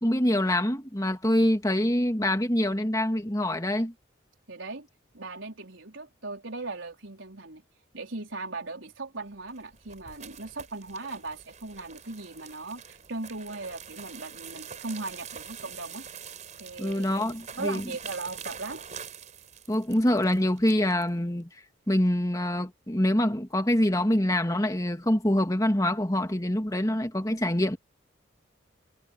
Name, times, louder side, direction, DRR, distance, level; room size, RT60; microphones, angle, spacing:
voice 1, 0.0-3.9 16.8-17.8 19.7-21.5 21.9-27.8, left 1 dB, 15° left, 2.1 m, -25 dB
voice 2, 4.5-4.9 5.1-7.6 7.9-16.1 16.6-18.9, right 3 dB, 75° right, 4.4 m, -38 dB
sound 1, 9.3-21.1, right 7 dB, 35° right, 4.9 m, -45 dB
head